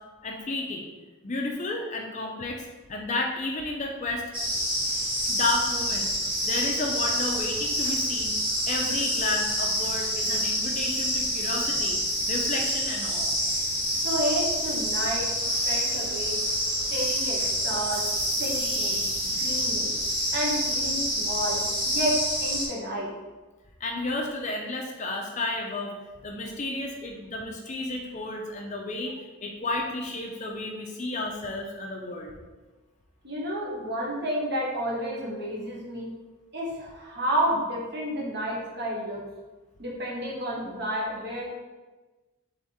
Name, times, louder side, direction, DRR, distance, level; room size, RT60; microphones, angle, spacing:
voice 1, 0.2-0.9 1.2-4.3 5.3-6.1 6.4-8.4 8.7-12.0 12.2-13.3 23.8-25.9 26.2-29.1 29.4-32.3, left 2 dB, 35° left, 1 dB, 0.5 m, -32 dB
sound 1, 4.3-22.7, equal, 25° right, 1.3 m, -27 dB
voice 2, 14.0-15.3 15.7-16.4 16.9-18.0 18.4-19.9 20.3-23.1 33.2-36.1 36.5-39.2 39.8-41.4, equal, 50° right, -4 dB, 1.1 m, -30 dB
3.6 x 3.5 x 4.2 m, 1.2 s
head